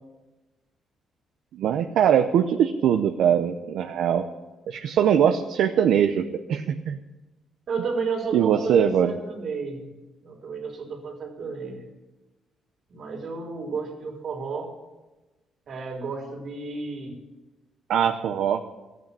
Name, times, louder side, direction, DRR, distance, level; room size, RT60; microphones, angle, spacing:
voice 1, 1.5-4.3 4.7-7.0 8.3-9.1 17.9-18.6, right 8 dB, 75° right, 6 dB, 0.7 m, -22 dB
voice 2, 7.7-9.9 10.2-11.8 12.9-14.7 15.7-17.2, right 4 dB, 60° right, 1 dB, 3.7 m, -32 dB
14.0 x 9.2 x 8.6 m, 1.1 s
cardioid pair, 90°, 0 cm